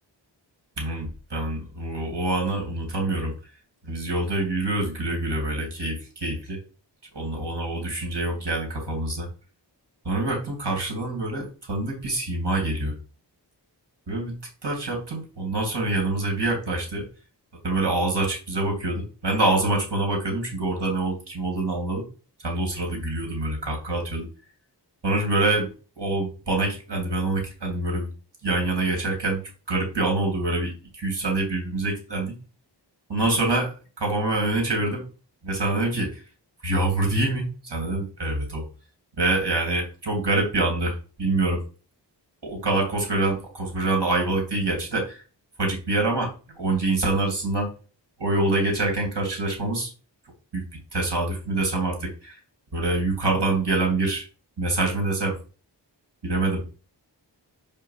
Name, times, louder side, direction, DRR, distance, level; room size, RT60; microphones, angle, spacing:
voice 1, 0.8-3.3 3.8-6.6 7.1-9.3 10.0-13.0 14.1-14.3 14.6-17.1 17.6-22.0 22.4-24.3 25.0-25.7 26.0-28.1 28.4-29.4 29.7-32.3 33.1-35.0 35.4-36.2 36.6-38.6 39.2-41.6 42.4-45.2 45.6-47.7 48.2-49.9 50.5-50.6 50.9-52.4 52.7-54.3 54.6-55.4 56.2-56.6, right 2 dB, 65° right, 1 dB, 2.8 m, -25 dB
5.6 x 5.4 x 5.8 m, 0.35 s
wide cardioid pair, 70°, 43 cm